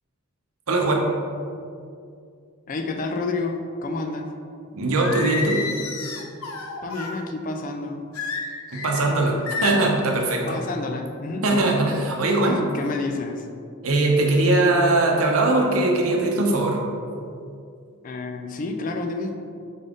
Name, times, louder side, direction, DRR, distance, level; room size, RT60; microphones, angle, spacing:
voice 1, 0.7-1.1 4.7-5.7 8.7-10.6 11.4-12.6 13.8-16.8, right 2 dB, 90° right, 0 dB, 0.7 m, -21 dB
voice 2, 2.7-4.3 6.8-8.1 10.5-11.4 12.4-13.5 18.0-19.4, left 3 dB, 40° left, 4 dB, 0.3 m, -29 dB
Singing, 5.0-7.2 8.1-9.0 9.5-10.0, left 4 dB, 85° left, 0.5 m, -30 dB
3.9 x 3.7 x 3.6 m, 2.4 s
head